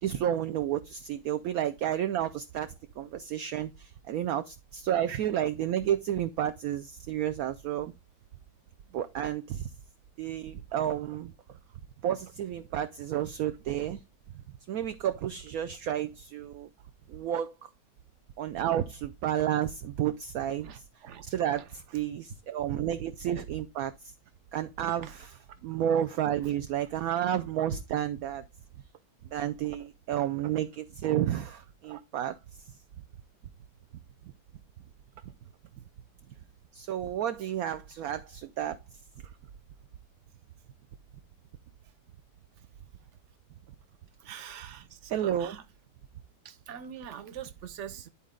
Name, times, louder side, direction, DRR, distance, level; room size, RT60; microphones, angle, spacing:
voice 1, 0.0-7.9 8.9-9.7 10.2-11.6 12.0-14.0 14.7-16.7 17.1-17.7 18.4-24.1 24.5-25.3 25.6-28.4 29.3-32.4 32.6-32.8 36.7-38.8 45.1-45.6, right 10 dB, 70° right, 1.0 m, -31 dB
voice 2, 44.2-45.6 46.4-48.1, right 9 dB, 50° right, 1.0 m, -43 dB
11.5 x 4.3 x 3.7 m
omnidirectional pair, 1.8 m